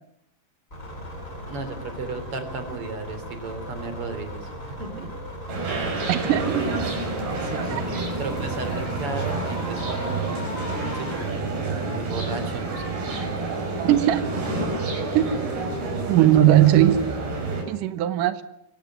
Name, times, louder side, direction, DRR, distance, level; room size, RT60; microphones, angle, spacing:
sound 1, 0.7-11.2, left 1 dB, 15° left, 7.8 m, -37 dB
voice 1, 1.5-5.1 7.4-10.5 10.9-13.2 15.3-16.3 16.6-16.7, right 3 dB, 35° right, 9 dB, 3.7 m, -35 dB
sound 2, 5.5-17.6, right 3 dB, 65° right, 7.6 m, -29 dB
voice 2, 6.1-6.9 7.7-7.8 13.9-14.3 15.1-15.5 16.1-17.1 17.7-18.4, right 12 dB, 90° right, 12 dB, 1.8 m, -19 dB
24.5 x 15.5 x 9.4 m, 0.82 s
omnidirectional pair, 5.2 m